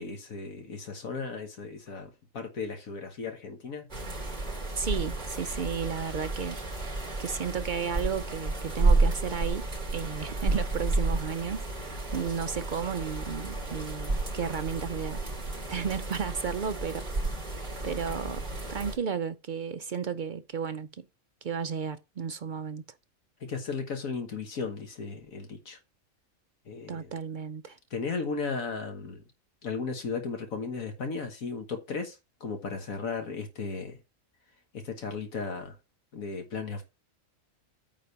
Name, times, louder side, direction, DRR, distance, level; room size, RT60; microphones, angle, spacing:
voice 1, 0.0-3.9 23.4-25.8 26.7-27.2 27.9-29.2 29.6-34.0 34.7-35.8 36.1-36.8, left 4 dB, 75° left, 1.8 m, -35 dB
sound 1, 3.9-19.0, right 2 dB, 30° right, 3.7 m, -31 dB
voice 2, 4.7-6.6 7.2-15.2 15.7-17.4 17.8-18.4 18.7-21.1 21.4-22.8 26.9-27.8, right 6 dB, 65° right, 0.4 m, -33 dB
9.1 x 3.7 x 6.8 m
omnidirectional pair, 1.5 m